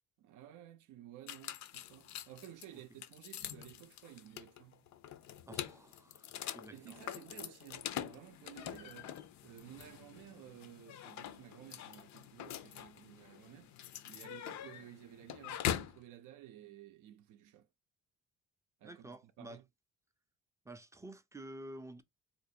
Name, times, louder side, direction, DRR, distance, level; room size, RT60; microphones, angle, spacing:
voice 1, 0.2-4.8 6.7-17.7 18.8-19.6, right 12 dB, 90° right, 0.5 m, -54 dB
sound 1, 1.3-16.0, left 10 dB, 65° left, 0.5 m, -44 dB
voice 2, 5.5-7.0 18.8-19.6 20.7-22.0, right 1 dB, 10° right, 0.3 m, -50 dB
4.0 x 2.5 x 2.6 m
cardioid pair, 90°, 30 cm